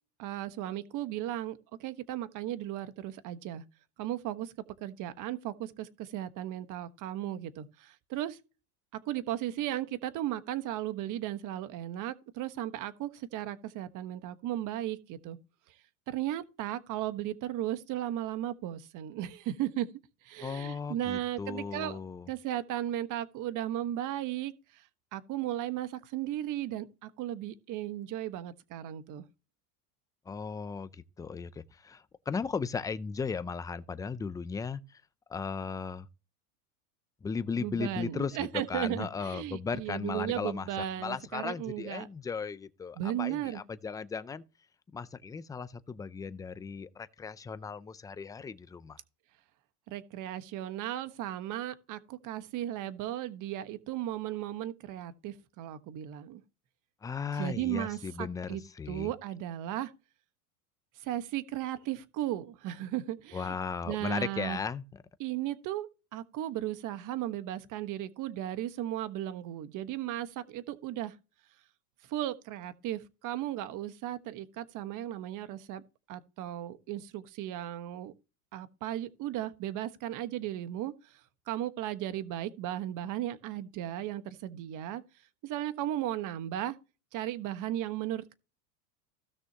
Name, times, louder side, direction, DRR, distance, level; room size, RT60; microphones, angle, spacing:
voice 1, 0.2-3.6 4.0-4.5 4.8-8.4 8.9-15.4 16.1-19.9 20.2-22.0 22.3-29.2 37.6-42.1 43.0-43.6 49.9-56.4 57.3-58.6 58.9-59.9 61.0-63.6 63.9-64.6 65.2-71.1 72.1-75.8 76.1-78.1 78.5-81.2 81.5-85.0 85.4-86.8 87.1-88.3, right 13 dB, 45° right, 1.3 m, -36 dB
voice 2, 20.4-22.3 30.3-35.0 35.3-36.1 37.2-40.7 41.0-44.4 44.9-49.0 57.0-59.1 63.3-64.8, left 5 dB, 10° left, 0.4 m, -36 dB
16.5 x 6.2 x 2.9 m
supercardioid pair, 115°, 45 cm